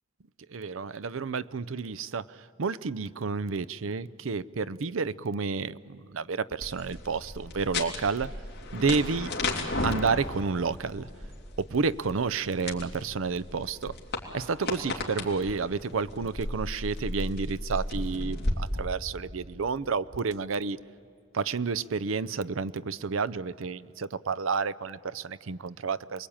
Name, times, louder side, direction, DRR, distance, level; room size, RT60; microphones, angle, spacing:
voice 1, 0.5-8.3 8.7-9.3 9.8-11.1 11.6-13.9 14.3-20.8 21.3-26.3, right 4 dB, 75° right, 17 dB, 0.6 m, -30 dB
sound 1, 6.6-18.5, left 2 dB, 50° left, 3.1 m, -35 dB
29.0 x 21.5 x 8.8 m, 2.4 s
head